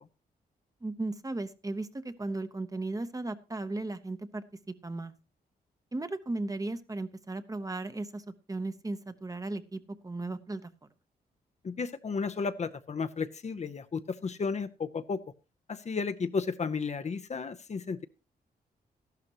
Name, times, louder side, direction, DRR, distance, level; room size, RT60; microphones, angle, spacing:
voice 1, 0.8-4.4 4.8-5.1 5.9-8.2 8.5-10.7, right 2 dB, 20° right, 11 dB, 0.9 m, -36 dB
voice 2, 11.6-15.2 15.7-18.0, left 5 dB, 40° left, 10 dB, 0.7 m, -33 dB
13.5 x 11.5 x 3.0 m, 0.30 s
cardioid pair, 70°, 17 cm